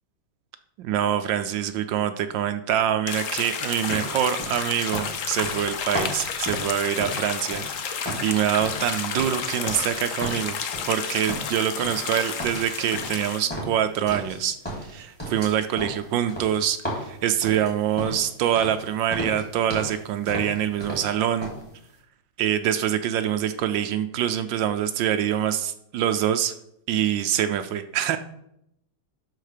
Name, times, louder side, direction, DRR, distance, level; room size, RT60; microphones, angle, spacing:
voice 1, 0.8-10.6 10.9-14.6 14.9-21.5 22.4-26.5 26.9-28.2, right 10 dB, 75° right, 10 dB, 1.1 m, -25 dB
sound 1, 3.1-13.4, left 7 dB, 70° left, 0.7 m, -31 dB
sound 2, 3.9-7.8 8.0-9.9 10.2-11.0 11.3-12.1 12.4-14.4 14.6-18.3 18.6-18.8 19.1-20.0 20.3-21.1 21.4-21.6, equal, 5° left, 3.0 m, -34 dB
12.0 x 4.2 x 5.0 m, 0.77 s
omnidirectional pair, 2.4 m